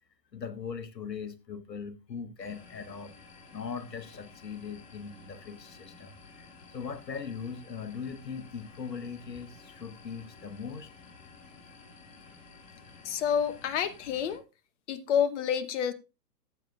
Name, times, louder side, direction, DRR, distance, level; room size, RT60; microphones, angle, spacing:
voice 1, 0.3-3.1 3.5-6.5 6.7-10.9, left 6 dB, 85° left, 1.3 m, -40 dB
sound 1, 2.4-14.4, left 4 dB, 65° left, 7.3 m, -53 dB
voice 2, 13.0-14.4 14.9-15.9, left 8 dB, 45° left, 1.1 m, -28 dB
15.5 x 7.9 x 2.4 m
figure-of-eight pair, 120°, 49 cm